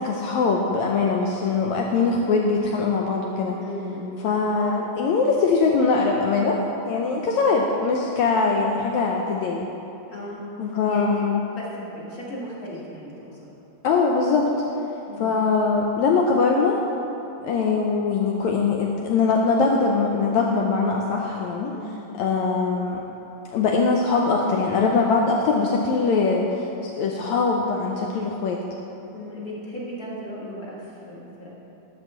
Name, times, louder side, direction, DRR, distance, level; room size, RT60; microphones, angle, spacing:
voice 1, 0.0-3.6 4.2-9.7 10.6-11.4 13.8-14.5 15.2-16.8 17.4-21.7 22.2-23.0 23.5-28.6, left 4 dB, 80° left, 0 dB, 1.6 m, -22 dB
voice 2, 3.6-4.1 10.1-10.4 10.9-13.4 15.0-15.3 21.6-21.9 29.1-31.5, equal, 45° left, -6 dB, 1.2 m, -36 dB
13.0 x 4.3 x 7.1 m, 2.9 s
omnidirectional pair, 3.9 m